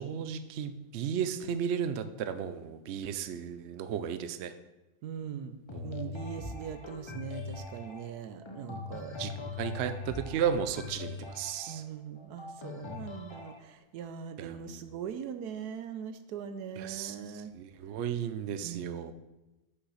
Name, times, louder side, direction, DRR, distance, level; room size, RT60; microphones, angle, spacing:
voice 1, 0.0-4.5 5.7-6.3 9.2-9.3 9.6-11.8 14.4-14.8 16.8-19.1, right 8 dB, 65° right, 10 dB, 0.7 m, -34 dB
voice 2, 5.0-5.6 5.8-9.1 11.7-17.5 18.6-19.1, right 8 dB, 80° right, 10 dB, 1.2 m, -41 dB
sound 1, 5.7-13.6, left 4 dB, 50° left, 0.3 m, -42 dB
6.5 x 5.8 x 5.6 m, 1.0 s
omnidirectional pair, 1.7 m